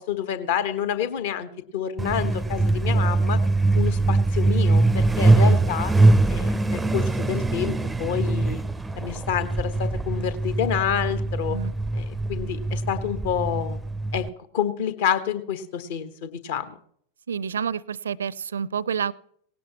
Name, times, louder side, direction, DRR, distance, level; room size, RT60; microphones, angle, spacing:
voice 1, 0.0-3.4 3.7-5.9 6.3-8.6 8.9-11.6 11.9-13.8 14.1-14.3 14.5-16.8, left 8 dB, 55° left, 12 dB, 1.2 m, -28 dB
Truck, 2.0-14.3, right 2 dB, 5° right, 0.5 m, -22 dB
voice 2, 17.3-19.1, right 7 dB, 65° right, 24 dB, 0.5 m, -29 dB
18.5 x 17.0 x 3.1 m, 0.64 s
figure-of-eight pair, 90°, 0 cm